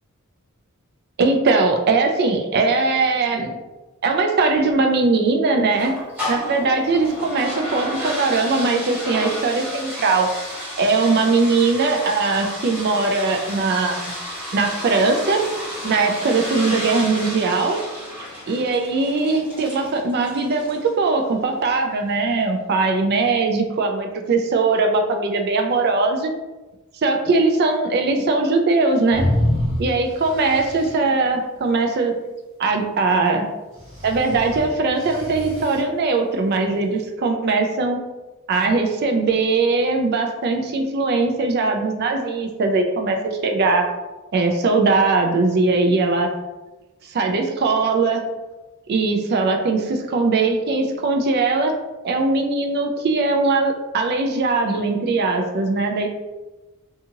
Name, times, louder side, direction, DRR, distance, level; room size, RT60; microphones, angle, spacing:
voice 1, 1.2-3.6 4.0-5.9 6.3-10.3 10.8-14.2 14.5-15.4 15.8-17.8 18.5-26.3 27.0-29.2 29.8-32.1 32.6-33.5 34.0-38.0 38.5-43.8 44.3-46.3 47.1-48.2 48.9-51.7 52.0-56.1, right 3 dB, 45° right, 3 dB, 0.4 m, -20 dB
sound 1, 5.7-21.0, equal, 10° right, 1.2 m, -32 dB
sound 2, 29.1-31.0 33.8-35.8, left 1 dB, 30° right, 1.3 m, -26 dB
2.7 x 2.4 x 2.8 m, 1.1 s
head